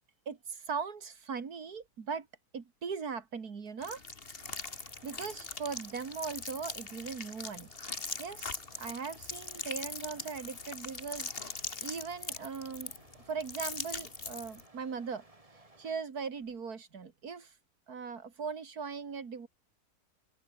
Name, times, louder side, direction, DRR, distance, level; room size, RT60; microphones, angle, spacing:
voice 1, 0.3-2.3 2.5-4.0 5.0-7.7 8.2-12.9 13.3-15.2 15.8-17.5 17.9-19.5, right 5 dB, 80° right, 2.6 m, -39 dB
sound 1, 3.8-14.6, left 4 dB, 40° left, 2.1 m, -41 dB
sound 2, 4.4-16.0, right 2 dB, 20° right, 3.0 m, -60 dB
open air
omnidirectional pair, 1.6 m